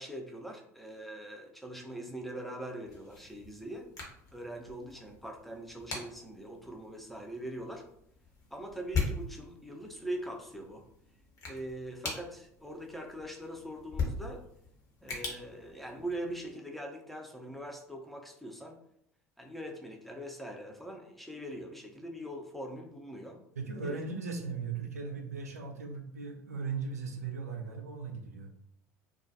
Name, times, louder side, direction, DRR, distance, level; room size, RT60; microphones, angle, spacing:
voice 1, 0.0-3.9 4.3-7.8 8.5-10.8 11.5-14.4 15.0-18.8 19.4-23.4 23.8-24.0, right 1 dB, ahead, 1 dB, 0.6 m, -42 dB
sound 1, 2.8-16.5, left 4 dB, 45° left, 0.9 m, -41 dB
voice 2, 23.6-28.5, right 5 dB, 85° right, 2 dB, 0.4 m, -38 dB
2.3 x 2.2 x 2.6 m, 0.73 s
figure-of-eight pair, 65°, 8 cm